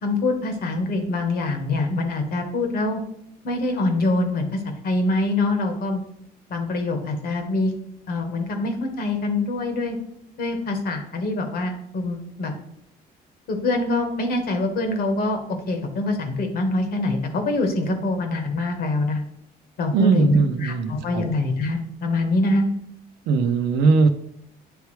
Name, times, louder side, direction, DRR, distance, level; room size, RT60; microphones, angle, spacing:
voice 1, 0.0-3.0 3.4-6.0 6.5-7.7 8.1-10.0 10.4-12.5 13.5-19.2 19.8-22.7, left 2 dB, 65° left, 4 dB, 1.3 m, -24 dB
voice 2, 19.9-21.3 23.3-24.1, right 4 dB, 85° right, 9 dB, 0.7 m, -20 dB
9.4 x 3.4 x 3.2 m, 0.74 s
cardioid pair, 110°, 17 cm